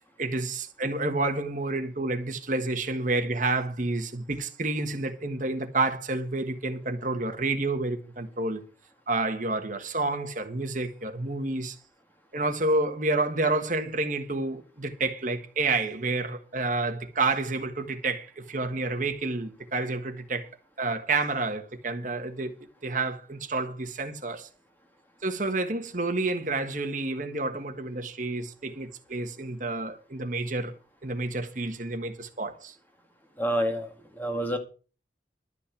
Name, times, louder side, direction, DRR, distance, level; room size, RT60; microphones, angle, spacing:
voice 1, 0.2-8.6 9.1-11.8 12.3-20.5 20.8-22.5 22.8-24.5 25.2-30.7 31.0-32.7, right 2 dB, 45° right, 1.5 m, -29 dB
voice 2, 33.4-34.6, equal, 10° left, 1.9 m, -28 dB
12.5 x 5.8 x 8.3 m
head